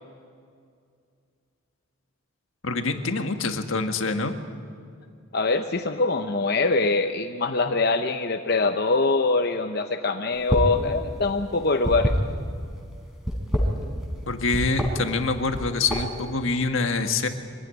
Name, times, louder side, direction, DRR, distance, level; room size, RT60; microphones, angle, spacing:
voice 1, 2.6-4.3 14.3-17.3, left 3 dB, 75° left, 7 dB, 1.6 m, -25 dB
voice 2, 5.3-12.1, left 3 dB, 50° left, 6 dB, 0.8 m, -23 dB
sound 1, 10.4-10.8 11.1-12.7 13.2-14.2 14.5-14.9 15.4-16.2, equal, 5° right, 3.8 m, -25 dB
24.5 x 15.5 x 9.9 m, 2.3 s
head